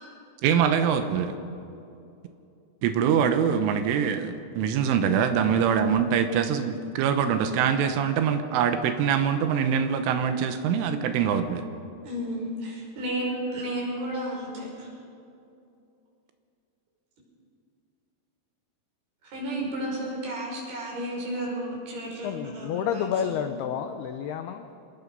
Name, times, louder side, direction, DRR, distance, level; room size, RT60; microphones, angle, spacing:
voice 1, 0.4-1.3 2.8-11.6, right 7 dB, 80° right, 8 dB, 3.5 m, -24 dB
voice 2, 12.0-14.9 19.2-23.5, right 1 dB, 55° right, -2 dB, 7.2 m, -33 dB
voice 3, 22.2-24.6, left 8 dB, 80° left, 7 dB, 2.3 m, -30 dB
26.0 x 20.0 x 5.4 m, 2.6 s
omnidirectional pair, 5.6 m